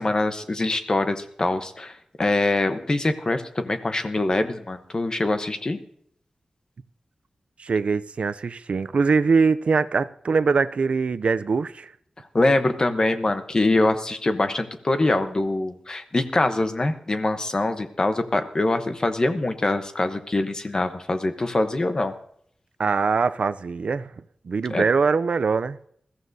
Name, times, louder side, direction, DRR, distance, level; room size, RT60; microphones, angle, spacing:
voice 1, 0.0-5.8 12.3-22.1 24.7-24.8, left 2 dB, 35° left, 0.9 m, -24 dB
voice 2, 7.6-11.9 22.8-24.1 24.4-25.8, right 4 dB, 65° right, 0.4 m, -22 dB
21.0 x 14.5 x 2.7 m
wide cardioid pair, 125°, 2 cm